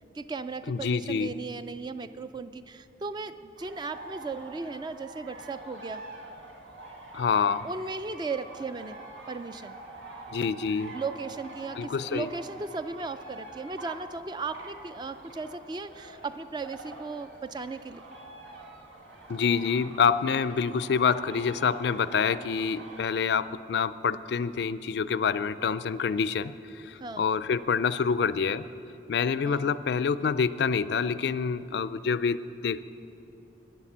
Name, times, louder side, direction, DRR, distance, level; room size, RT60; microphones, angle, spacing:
voice 1, 0.1-6.0 7.6-9.0 9.3-9.8 10.9-18.1 27.0-27.3 29.4-29.7, right 4 dB, 25° right, 12 dB, 0.3 m, -36 dB
voice 2, 0.7-1.3 7.1-7.7 10.3-11.0 11.8-12.3 19.3-28.6 29.1-32.8, left 6 dB, 60° left, 16 dB, 0.3 m, -27 dB
sound 1, 3.6-23.0, right 2 dB, 90° right, 1.8 m, -46 dB
11.0 x 9.8 x 7.3 m, 2.6 s
head